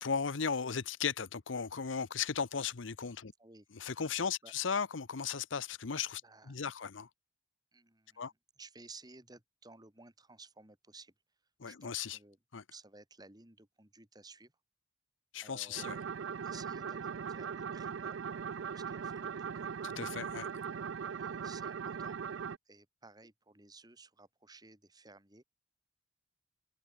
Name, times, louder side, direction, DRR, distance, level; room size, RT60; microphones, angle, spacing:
voice 1, 0.0-3.3 3.7-7.1 8.2-8.3 11.6-12.2 12.5-12.6 15.3-16.0 19.8-20.5, left 6 dB, 85° left, 0.8 m, -36 dB
voice 2, 6.2-6.6 7.7-11.1 11.7-12.4 12.7-14.5 15.4-16.0 16.4-18.2 18.7-19.8 21.0-22.2 22.7-25.4, right 3 dB, 20° right, 2.8 m, -56 dB
sound 1, 15.8-22.6, right 6 dB, 75° right, 0.4 m, -39 dB
head